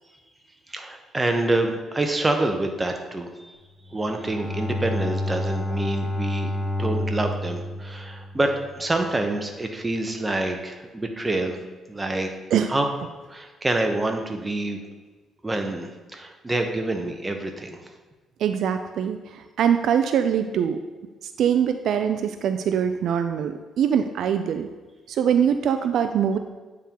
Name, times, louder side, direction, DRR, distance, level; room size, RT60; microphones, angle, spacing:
voice 1, 0.7-3.5 3.9-6.5 6.8-11.6 11.9-12.3 12.7-12.9 13.3-14.8 15.4-17.9, right 2 dB, 20° right, 4 dB, 0.8 m, -27 dB
Bowed string instrument, 3.8-9.0, left 1 dB, 15° left, 1.5 m, -30 dB
voice 2, 18.4-20.8 21.2-24.7 25.1-26.4, right 8 dB, 75° right, 8 dB, 0.3 m, -23 dB
8.9 x 3.6 x 2.9 m, 1.3 s
cardioid pair, 90°, 0 cm